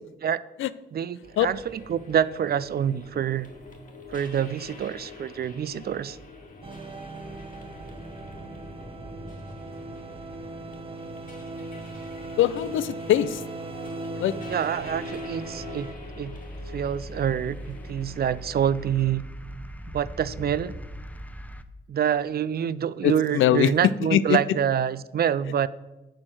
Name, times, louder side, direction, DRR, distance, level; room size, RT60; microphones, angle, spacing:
voice 1, 0.9-3.5 4.1-6.2 14.5-16.4 16.7-19.2 19.9-20.7 21.9-25.7, right 9 dB, 50° right, 17 dB, 0.4 m, -26 dB
sound 1, 1.2-19.1, left 3 dB, 40° left, 2.1 m, -45 dB
sound 2, 6.6-15.9, right 2 dB, 25° right, 1.0 m, -38 dB
voice 2, 12.4-13.4 14.2-14.4 23.0-23.7 24.1-24.4, left 12 dB, 70° left, 17 dB, 0.4 m, -22 dB
sound 3, 14.8-21.6, equal, 5° left, 0.7 m, -41 dB
7.5 x 4.3 x 6.6 m, 1.0 s
supercardioid pair, 50°, 21 cm